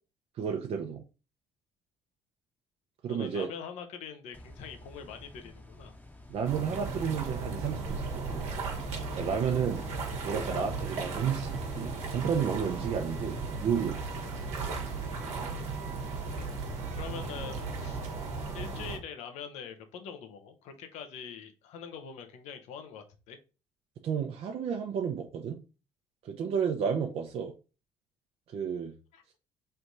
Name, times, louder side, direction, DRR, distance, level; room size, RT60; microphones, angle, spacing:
voice 1, 0.4-1.0 3.0-3.5 6.3-8.4 9.1-9.8 10.2-14.0 24.0-25.6 26.2-27.5 28.5-28.9, right 7 dB, 60° right, 3 dB, 0.6 m, -32 dB
voice 2, 3.1-5.9 17.0-18.0 18.5-23.4 29.1-29.2, left 7 dB, 80° left, 7 dB, 0.8 m, -44 dB
sound 1, 4.3-12.6, left 1 dB, 15° left, 0.9 m, -50 dB
sound 2, 6.4-19.0, right 4 dB, 75° right, 1.1 m, -36 dB
3.3 x 2.6 x 4.5 m, 0.32 s
supercardioid pair, 70°, 11 cm